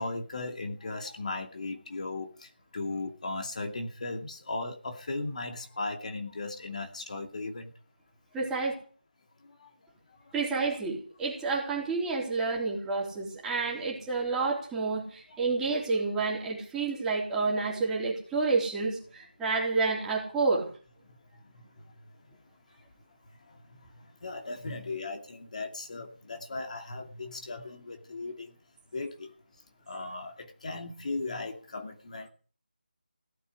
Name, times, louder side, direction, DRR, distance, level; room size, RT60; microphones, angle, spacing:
voice 1, 0.0-7.7 9.4-9.7 10.1-10.3 15.3-15.4 21.0-22.0 22.3-22.4 22.7-22.9 23.3-28.6 28.9-32.3, left 3 dB, 45° left, 4 dB, 2.5 m, -38 dB
voice 2, 8.3-8.7 10.3-20.7, right 4 dB, 5° right, -4 dB, 3.6 m, -29 dB
17.5 x 8.4 x 9.7 m, 0.41 s
figure-of-eight pair, 165°, 5 cm